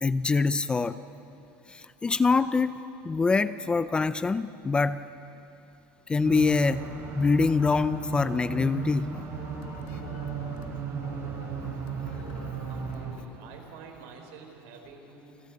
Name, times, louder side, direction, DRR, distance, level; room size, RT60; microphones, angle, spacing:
voice 1, 0.0-1.0 1.7-5.0 6.1-6.9 7.2-9.2 9.9-10.0, left 4 dB, 15° left, 14 dB, 0.4 m, -25 dB
sound 1, 6.2-13.1, right 5 dB, 45° right, 5.0 m, -35 dB
sound 2, 9.4-13.8, left 9 dB, 85° left, 1.3 m, -50 dB
voice 2, 12.7-15.5, right 5 dB, 75° right, 3 dB, 4.4 m, -48 dB
29.0 x 13.0 x 8.8 m, 2.8 s
cardioid pair, 150°, 7 cm